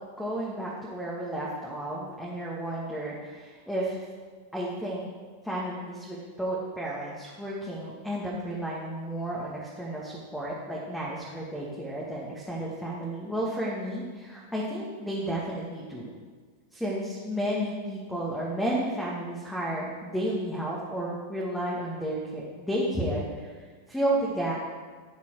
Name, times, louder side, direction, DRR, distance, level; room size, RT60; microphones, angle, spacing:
voice 1, 0.2-4.0 4.5-5.0 5.4-16.1 16.7-23.5 23.9-24.5, right 1 dB, 5° left, -5 dB, 2.2 m, -32 dB
16.0 x 6.8 x 4.9 m, 1.5 s
figure-of-eight pair, 90°, 0 cm